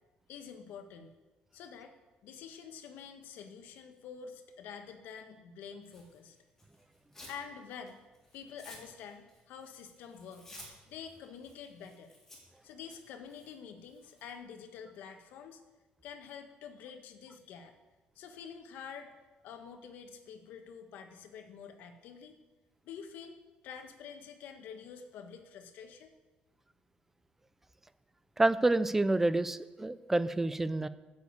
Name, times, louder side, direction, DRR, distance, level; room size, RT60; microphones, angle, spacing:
voice 1, 0.3-1.1 1.5-1.9 2.2-6.4 7.3-8.0 8.3-10.5 10.9-12.1 12.6-15.6 16.0-17.7 18.1-19.1 19.4-22.4 22.8-23.4 23.6-26.1, left 7 dB, 75° left, 6 dB, 1.3 m, -47 dB
Tearing, 5.8-7.4 7.8-14.3, left 1 dB, 10° left, 3.2 m, -55 dB
voice 2, 28.4-30.9, right 2 dB, 10° right, 15 dB, 0.3 m, -28 dB
9.4 x 7.2 x 8.1 m, 1.2 s
cardioid pair, 165°, 3 cm